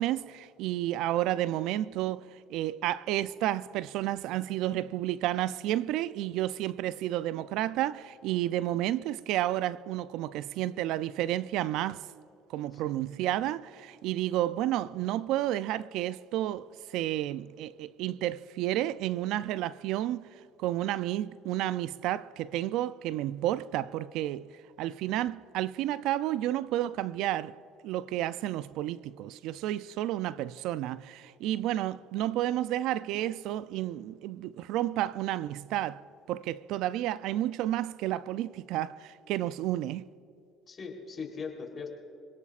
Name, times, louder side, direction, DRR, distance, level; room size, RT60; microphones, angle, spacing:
voice 1, 0.0-2.2 2.5-12.1 12.5-20.3 20.6-27.6 27.8-36.0 36.3-40.0, right 13 dB, 70° right, 0.4 m, -31 dB
voice 2, 40.7-41.9, left 5 dB, 35° left, 3.5 m, -40 dB
26.5 x 18.0 x 2.5 m
supercardioid pair, 80°, 0 cm